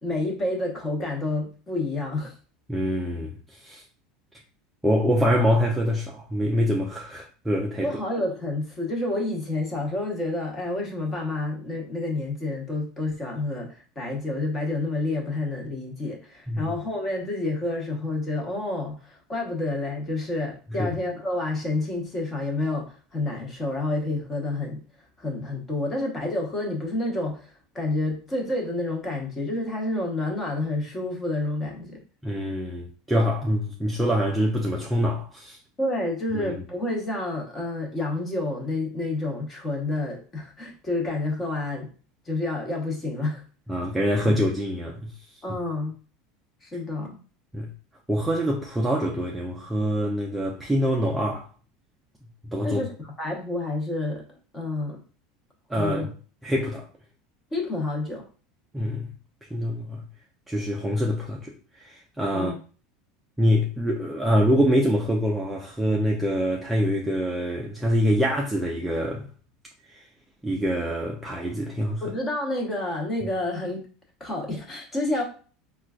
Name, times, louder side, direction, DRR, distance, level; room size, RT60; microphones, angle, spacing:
voice 1, 0.0-2.3 7.8-24.8 25.2-32.0 35.8-41.9 42.3-43.4 45.4-45.9 46.6-47.2 52.6-54.2 54.5-55.0 55.8-56.1 57.5-58.3 62.3-62.6 72.0-73.8 74.2-75.2, left 2 dB, 15° left, 0.9 m, -29 dB
voice 2, 2.7-3.8 4.8-7.9 16.5-16.6 20.8-20.9 32.2-35.6 36.3-36.5 43.7-45.1 47.5-47.7 48.1-51.5 52.5-52.8 55.7-56.1 56.4-56.9 58.7-59.1 59.5-60.0 60.5-62.5 63.4-69.3 69.9-70.0 70.4-72.0, equal, 5° right, 0.3 m, -25 dB
4.4 x 2.2 x 2.3 m
supercardioid pair, 160°, 0 cm